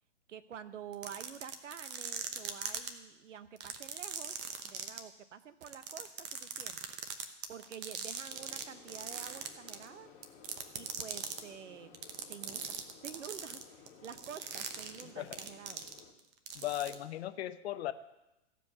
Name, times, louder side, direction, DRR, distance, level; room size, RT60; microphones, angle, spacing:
voice 1, 0.3-4.3 4.6-6.8 7.5-10.1 10.7-15.8 16.6-16.7, right 8 dB, 80° right, 13 dB, 0.9 m, -49 dB
sound 1, 0.9-2.9 3.6-5.0 5.6-8.6 8.9-9.9 10.2-11.4 11.9-16.2 16.5-16.9, right 8 dB, 30° right, 1.0 m, -40 dB
sound 2, 8.3-16.1, left 6 dB, 35° left, 1.7 m, -57 dB
voice 2, 16.5-17.9, left 13 dB, 60° left, 12 dB, 0.8 m, -37 dB
15.0 x 5.2 x 6.7 m, 0.95 s
hypercardioid pair, 115°, 36 cm